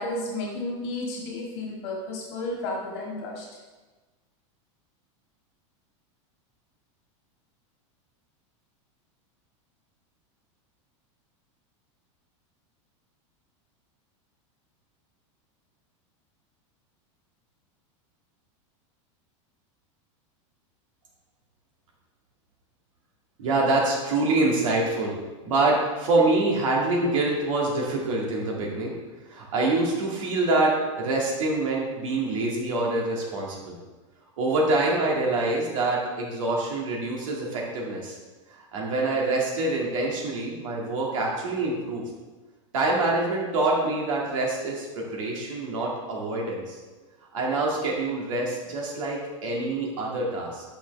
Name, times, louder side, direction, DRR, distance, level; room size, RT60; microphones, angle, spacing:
voice 1, 0.0-3.5, left 2 dB, 55° left, -1 dB, 1.9 m, -32 dB
voice 2, 23.4-25.2 25.4-28.9 29.3-33.8 34.4-38.2 38.5-42.0 42.7-46.8 47.3-50.6, right 2 dB, 90° right, -2 dB, 2.0 m, -25 dB
8.7 x 5.8 x 3.5 m, 1.2 s
supercardioid pair, 160°, 16 cm